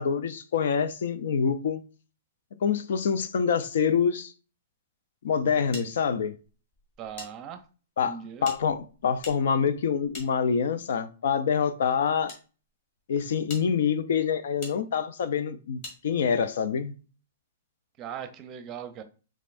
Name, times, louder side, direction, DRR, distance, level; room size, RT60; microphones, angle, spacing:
voice 1, 0.0-1.8 2.6-4.3 5.2-6.4 8.0-12.3 13.1-16.9, left 6 dB, 70° left, 0.5 m, -26 dB
sound 1, 5.7-7.3 7.6-7.7 8.4-10.9 11.7-12.4 13.0-13.1 13.5-13.7 14.6-14.8 15.8-16.0, left 2 dB, 45° left, 1.9 m, -44 dB
voice 2, 7.0-7.6 8.0-8.4 18.0-19.0, right 8 dB, 25° right, 0.7 m, -39 dB
5.4 x 3.6 x 2.5 m
hypercardioid pair, 155°, 0 cm